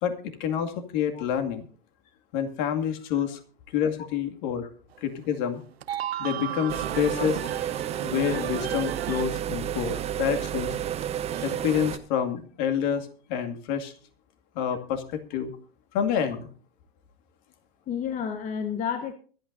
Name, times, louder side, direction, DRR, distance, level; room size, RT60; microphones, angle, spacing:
voice 1, 0.0-1.7 2.3-3.4 3.7-4.6 5.0-5.6 6.2-7.4 8.0-10.7 11.4-13.9 14.6-15.5 15.9-16.5, left 8 dB, 50° left, 6 dB, 2.3 m, -28 dB
sound 1, 4.9-5.0 5.6-9.4 9.6-11.6, right 11 dB, 85° right, 0.8 m, -35 dB
sound 2, 6.7-12.0, right 10 dB, 20° right, 0.9 m, -31 dB
voice 2, 17.9-19.1, left 7 dB, 25° left, 9 dB, 1.1 m, -31 dB
24.0 x 8.9 x 2.7 m, 0.41 s
hypercardioid pair, 125°, 30 cm